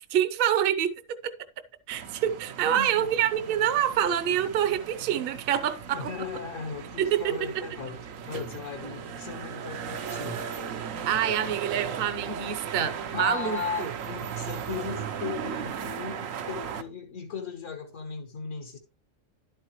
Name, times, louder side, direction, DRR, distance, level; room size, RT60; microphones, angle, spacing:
voice 1, 0.1-0.9 1.2-1.3 1.9-6.1 7.0-7.6 10.8-13.9, right 10 dB, 50° right, 0.9 m, -26 dB
sound 1, 1.9-16.8, right 7 dB, 75° right, 1.2 m, -37 dB
voice 2, 2.7-3.1 5.9-10.5 13.1-18.8, left 6 dB, 70° left, 1.6 m, -37 dB
11.5 x 8.7 x 3.0 m
omnidirectional pair, 1.4 m